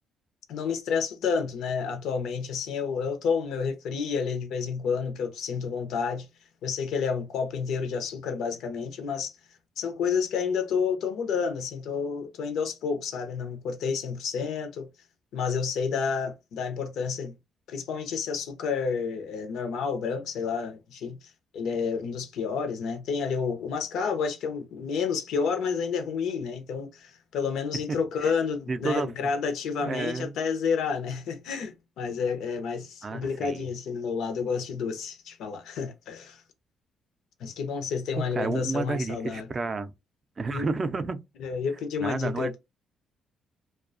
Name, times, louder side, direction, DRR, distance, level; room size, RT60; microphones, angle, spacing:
voice 1, 0.5-6.3 6.6-9.3 9.8-14.9 15.3-17.3 17.7-21.2 21.5-36.4 37.4-39.5 40.5-40.7 41.4-42.6, left 6 dB, 80° left, 0.5 m, -30 dB
voice 2, 28.7-29.1 29.8-30.3 33.0-33.7 38.2-39.9 40.4-41.2 42.0-42.6, right 3 dB, 35° right, 0.4 m, -31 dB
2.3 x 2.2 x 2.4 m
cardioid pair, 90°, 0 cm